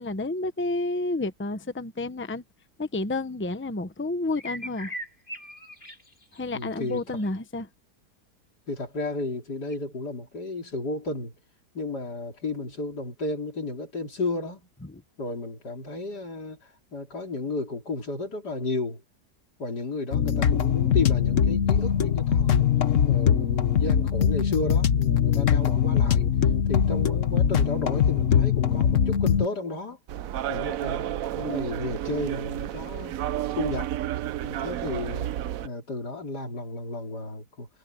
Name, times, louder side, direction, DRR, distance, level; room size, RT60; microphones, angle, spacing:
voice 1, 0.0-2.4 2.8-4.9 6.3-7.7 14.8-15.0 25.3-25.4, left 2 dB, 10° left, 0.8 m, -30 dB
sound 1, 4.4-7.2 9.7-9.8, equal, 30° left, 5.5 m, -39 dB
voice 2, 6.5-7.0 8.7-11.3 11.7-14.7 15.2-16.6 16.9-19.0 19.6-22.7 23.1-26.3 26.7-30.0 30.5-33.2 33.5-33.9 34.4-35.3 35.6-37.7, left 2 dB, 90° left, 4.2 m, -33 dB
sound 2, 20.1-29.5, left 8 dB, 55° left, 1.4 m, -22 dB
sound 3, 30.1-35.7, right 12 dB, 65° right, 1.0 m, -31 dB
omnidirectional pair, 1.7 m